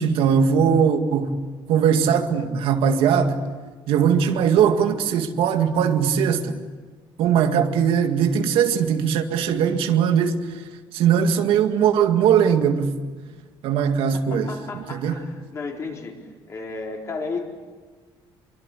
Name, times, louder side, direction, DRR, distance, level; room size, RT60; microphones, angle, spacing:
voice 1, 0.0-1.3 1.7-3.4 3.9-6.6 7.2-10.6 10.9-13.0 13.6-14.5 14.9-15.1, right 7 dB, 75° right, 2.0 m, -20 dB
voice 2, 14.1-17.4, left 4 dB, 30° left, 4.2 m, -33 dB
25.5 x 24.0 x 8.7 m
cardioid pair, 160°, 9 cm